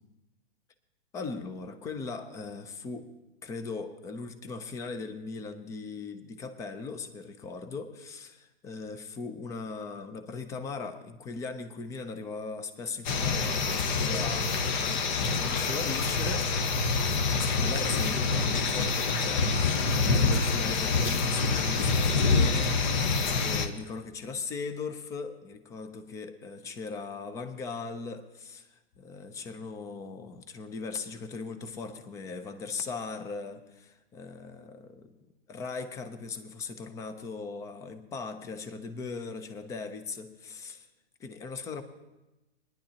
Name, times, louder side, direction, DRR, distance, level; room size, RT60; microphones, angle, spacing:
voice 1, 1.1-3.1 3.4-16.6 17.6-35.1 35.5-40.9 41.2-41.8, left 4 dB, 10° left, 10 dB, 0.4 m, -39 dB
sound 1, 13.0-23.7, left 4 dB, 45° left, 1.0 m, -26 dB
21.0 x 10.5 x 2.8 m, 1.0 s
hypercardioid pair, 140°, 32 cm